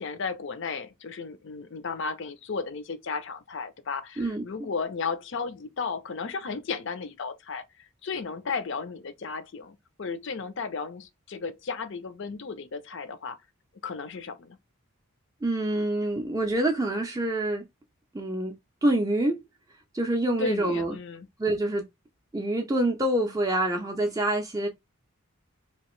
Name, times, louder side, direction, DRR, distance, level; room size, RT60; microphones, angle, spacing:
voice 1, 0.0-13.4 13.8-14.6 20.4-21.3, left 5 dB, 55° left, 0.5 m, -34 dB
voice 2, 4.2-4.7 15.4-17.6 18.1-18.5 18.8-19.4 19.9-21.0 21.4-21.8 22.3-24.7, right 1 dB, 15° right, 0.4 m, -26 dB
2.9 x 2.5 x 3.0 m
head